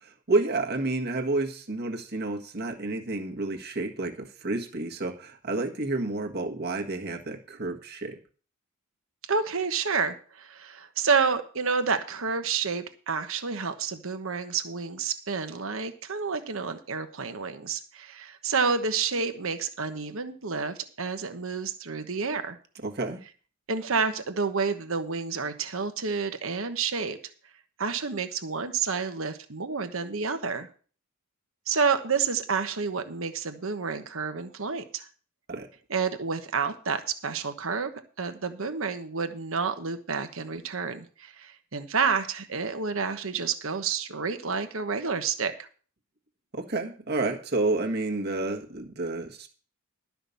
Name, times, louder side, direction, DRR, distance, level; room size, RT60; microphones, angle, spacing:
voice 1, 0.0-8.2 22.8-23.2 35.5-35.7 46.5-49.5, right 2 dB, 50° right, 2 dB, 1.6 m, -30 dB
voice 2, 9.3-22.6 23.7-27.2 27.8-30.7 31.7-35.1 35.9-37.9 38.2-45.5, right 5 dB, 65° right, 8 dB, 1.2 m, -29 dB
12.5 x 5.9 x 6.9 m, 0.41 s
head